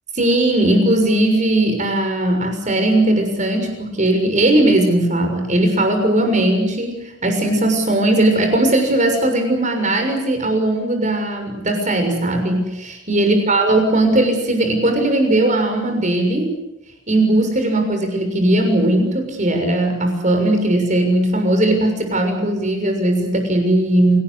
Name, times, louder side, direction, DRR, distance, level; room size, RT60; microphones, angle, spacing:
voice 1, 0.1-16.5 17.1-24.2, right 1 dB, 40° right, 5 dB, 6.6 m, -18 dB
27.5 x 19.0 x 8.5 m, 0.93 s
head